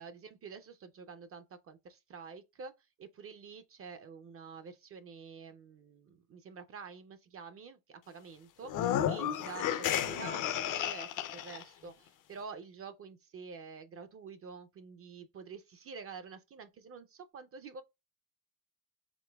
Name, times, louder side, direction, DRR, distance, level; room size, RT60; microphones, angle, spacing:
voice 1, 0.0-2.7 3.0-17.8, right 5 dB, 40° right, 0.4 m, -48 dB
sound 1, 8.6-11.6, left 10 dB, 55° left, 0.5 m, -32 dB
5.0 x 3.3 x 2.2 m
cardioid pair, 110°, 38 cm